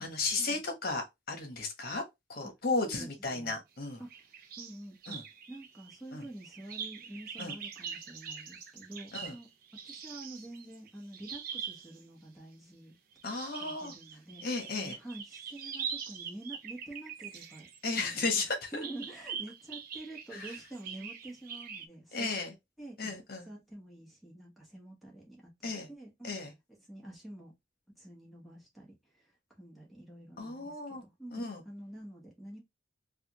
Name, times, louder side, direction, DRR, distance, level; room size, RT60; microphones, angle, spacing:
voice 1, 0.0-2.0 2.3-4.0 5.1-5.2 6.1-6.2 7.4-7.5 9.1-9.3 13.2-13.9 14.4-15.0 17.8-18.8 20.3-20.5 22.1-22.5 23.0-23.5 25.6-25.9 26.2-26.5 30.4-31.0 31.3-31.6, left 3 dB, 50° left, 1.1 m, -34 dB
voice 2, 2.8-3.6 4.0-4.1 4.6-5.2 5.5-9.5 9.8-12.9 13.6-14.4 14.7-17.7 18.0-18.2 18.7-22.4 22.8-23.2 23.5-26.4 26.9-27.5 28.0-29.2 29.6-32.6, right 1 dB, ahead, 1.1 m, -47 dB
sound 1, 4.1-4.8 5.0-12.0 13.1-18.4 18.8-21.9, right 7 dB, 50° right, 0.5 m, -43 dB
3.3 x 2.4 x 2.9 m
head